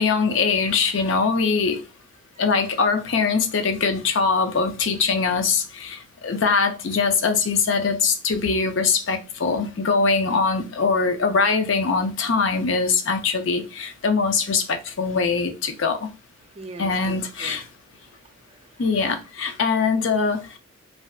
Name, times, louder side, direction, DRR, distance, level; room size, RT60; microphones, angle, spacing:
voice 1, 0.0-1.8 2.4-16.1 16.8-17.6 18.8-20.5, left 4 dB, 65° left, 0.5 m, -22 dB
voice 2, 16.4-17.6 17.9-19.1 19.5-19.6, right 3 dB, 30° right, 0.4 m, -44 dB
3.2 x 2.6 x 2.3 m
head